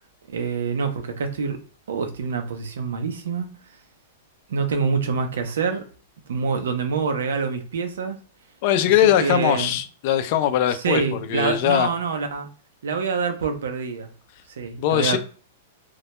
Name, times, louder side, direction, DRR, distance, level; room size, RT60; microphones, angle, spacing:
voice 1, 0.3-1.6 1.9-3.5 4.5-5.8 6.3-8.2 9.2-9.7 10.7-12.5 12.8-14.1 14.5-15.2, right 5 dB, 90° right, 0.6 m, -26 dB
voice 2, 8.6-11.9 14.8-15.2, left 11 dB, 45° left, 0.4 m, -21 dB
2.2 x 2.1 x 2.9 m
supercardioid pair, 155°, 0 cm